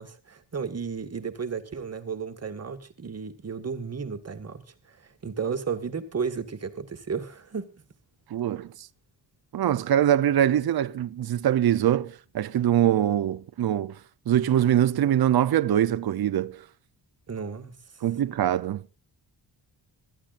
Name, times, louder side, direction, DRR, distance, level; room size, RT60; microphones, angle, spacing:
voice 1, 0.0-7.7 17.3-17.8, right 6 dB, 35° right, 1.9 m, -33 dB
voice 2, 8.3-8.7 9.5-14.0 14.3-16.6 18.0-18.8, right 11 dB, 55° right, 0.8 m, -23 dB
26.5 x 13.5 x 2.6 m
wide cardioid pair, 150°, 44 cm